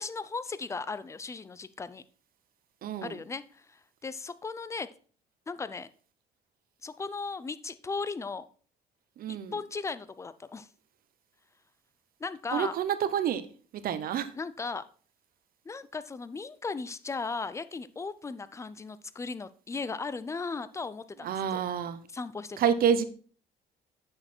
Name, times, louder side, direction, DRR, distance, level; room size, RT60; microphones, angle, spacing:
voice 1, 0.0-2.0 3.0-4.9 5.5-5.9 6.8-8.4 9.3-10.7 12.2-12.7 14.3-14.8 15.7-21.6 22.1-22.6, left 4 dB, 15° left, 15 dB, 0.5 m, -37 dB
voice 2, 2.8-3.2 9.2-9.5 12.5-13.4 13.7-14.3 21.2-22.0 22.6-23.0, right 8 dB, 60° right, 12 dB, 0.9 m, -28 dB
8.4 x 6.6 x 4.4 m, 0.43 s
cardioid pair, 110°, 17 cm